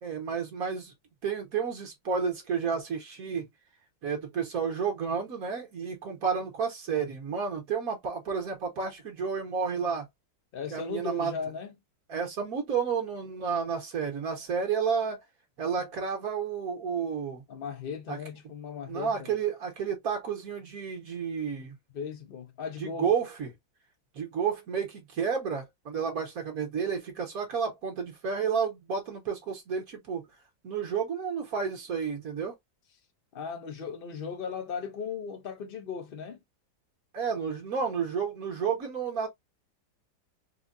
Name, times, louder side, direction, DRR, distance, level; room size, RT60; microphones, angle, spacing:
voice 1, 0.0-0.9 1.2-3.5 4.0-10.1 10.7-11.3 12.1-15.2 15.6-17.4 18.1-18.2 18.9-21.8 22.8-23.5 24.1-30.2 30.6-32.5 37.1-39.3, right 6 dB, 55° right, 1.6 m, -31 dB
voice 2, 10.5-11.7 17.5-19.3 21.9-23.1 33.3-36.4, left 6 dB, 55° left, 0.6 m, -37 dB
4.1 x 2.3 x 2.6 m
omnidirectional pair, 2.0 m